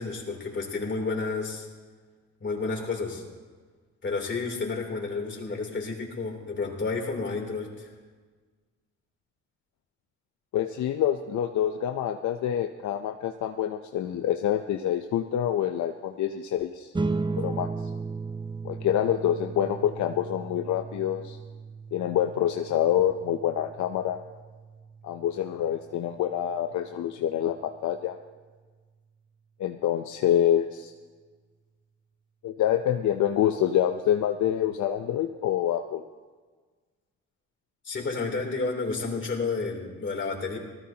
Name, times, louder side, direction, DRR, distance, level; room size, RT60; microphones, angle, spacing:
voice 1, 0.0-1.7 2.4-3.2 4.0-7.9 37.8-40.6, left 4 dB, 40° left, 0 dB, 3.2 m, -31 dB
voice 2, 10.5-16.9 17.4-17.7 18.6-21.4 21.9-24.2 25.0-28.2 29.6-30.9 32.4-36.0, left 10 dB, 70° left, 5 dB, 0.7 m, -26 dB
sound 1, 16.9-27.7, right 4 dB, 15° right, 0.7 m, -36 dB
18.5 x 14.5 x 2.9 m, 1.4 s
cardioid pair, 90°, 30 cm